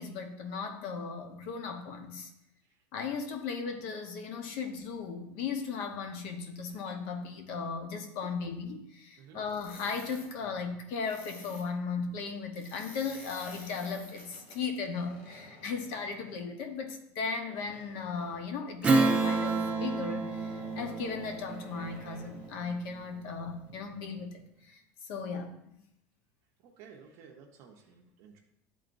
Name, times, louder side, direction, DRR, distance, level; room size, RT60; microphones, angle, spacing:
voice 1, 0.0-2.3 2.9-24.3 24.7-25.5, left 5 dB, 65° left, 5 dB, 1.0 m, -37 dB
sound 1, 9.5-10.3 11.0-11.7 12.5-16.5 17.5-18.5 19.4-19.7 20.2-22.6, left 2 dB, 90° left, 1.8 m, -51 dB
Strum, 18.8-23.7, right 3 dB, 20° right, 0.6 m, -30 dB
voice 2, 26.6-28.4, right 6 dB, 55° right, 1 dB, 0.8 m, -53 dB
11.0 x 3.8 x 2.6 m, 0.80 s
cardioid pair, 150°, 7 cm